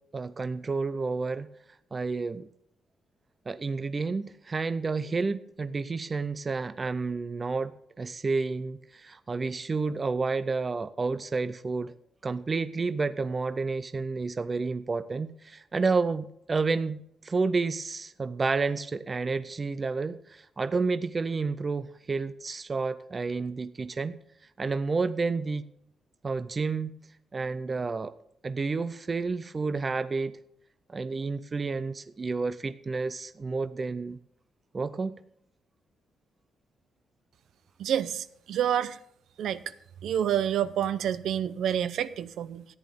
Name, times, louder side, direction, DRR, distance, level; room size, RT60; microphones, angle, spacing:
voice 1, 0.1-1.5 1.9-2.5 3.5-11.9 12.2-24.2 24.6-25.6 26.2-26.9 27.3-28.1 28.4-30.3 30.9-34.2 34.7-35.2, right 4 dB, 25° right, 14 dB, 0.5 m, -30 dB
voice 2, 37.8-39.0 39.4-39.6 40.0-42.7, right 10 dB, 80° right, 14 dB, 0.6 m, -28 dB
14.0 x 10.5 x 3.6 m, 0.75 s
cardioid pair, 140°, 0 cm